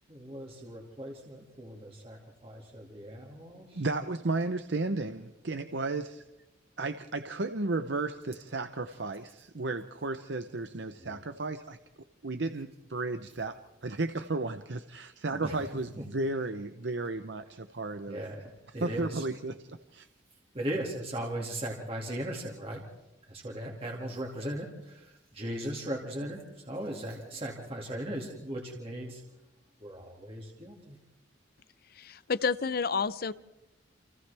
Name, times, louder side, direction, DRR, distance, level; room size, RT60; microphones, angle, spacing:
voice 1, 0.1-3.9 11.0-11.2 15.4-15.7 16.0-16.1 18.1-19.3 20.3-22.8 23.2-29.2 29.8-31.0, right 1 dB, 30° right, -1 dB, 2.3 m, -38 dB
voice 2, 3.7-6.2 6.8-11.8 12.2-18.2 18.8-19.6 19.9-20.1, right 3 dB, 60° right, 9 dB, 0.8 m, -34 dB
voice 3, 32.0-33.3, left 5 dB, 50° left, 16 dB, 0.6 m, -30 dB
29.5 x 28.0 x 3.5 m, 1.0 s
head